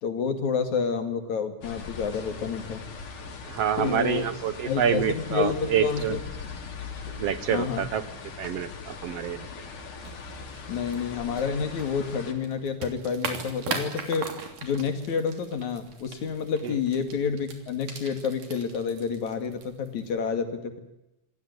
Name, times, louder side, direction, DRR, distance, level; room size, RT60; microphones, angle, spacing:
voice 1, 0.0-2.8 3.8-4.3 4.6-6.2 7.5-7.9 10.7-14.3 14.6-20.8, left 6 dB, 70° left, 7 dB, 3.6 m, -29 dB
sound 1, 1.6-12.3, left 4 dB, 85° left, 4.4 m, -40 dB
voice 2, 3.5-6.2 7.1-8.0 8.4-9.5 16.6-16.7, right 8 dB, 65° right, 13 dB, 1.8 m, -27 dB
sound 2, 10.0-20.2, right 4 dB, 85° right, 4.6 m, -40 dB
27.0 x 16.0 x 9.5 m, 0.94 s
omnidirectional pair, 3.4 m